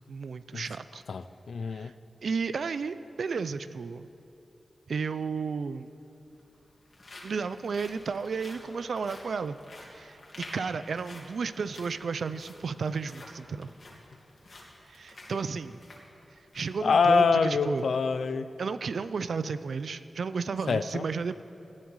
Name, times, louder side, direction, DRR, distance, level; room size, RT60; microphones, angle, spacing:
voice 1, 0.1-1.0 1.7-1.9 2.2-4.1 4.9-5.9 7.2-9.6 9.9-13.7 14.9-15.8 16.5-17.8 18.6-21.4, right 5 dB, 80° right, 13 dB, 0.5 m, -33 dB
voice 2, 1.1-1.9 16.8-18.5 20.7-21.0, left 5 dB, 85° left, 13 dB, 0.5 m, -25 dB
sound 1, 6.2-16.8 17.2-17.3 17.8-18.0, left 2 dB, 55° left, 2.8 m, -50 dB
18.5 x 13.0 x 4.8 m, 2.9 s
wide cardioid pair, 85°, 0 cm